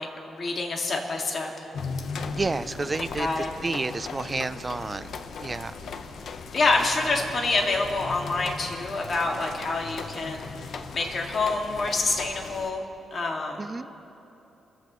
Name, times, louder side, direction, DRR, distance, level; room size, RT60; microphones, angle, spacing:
voice 1, 0.0-1.7 3.2-3.5 6.5-13.7, left 3 dB, 45° left, 1 dB, 2.1 m, -27 dB
sound 1, 1.7-12.7, left 5 dB, 65° left, 0.9 m, -37 dB
voice 2, 2.3-3.3 3.6-5.1 5.4-5.7 13.6-13.9, right 3 dB, 25° right, 13 dB, 0.5 m, -30 dB
29.5 x 14.5 x 3.1 m, 3.0 s
cardioid pair, 125°, 0 cm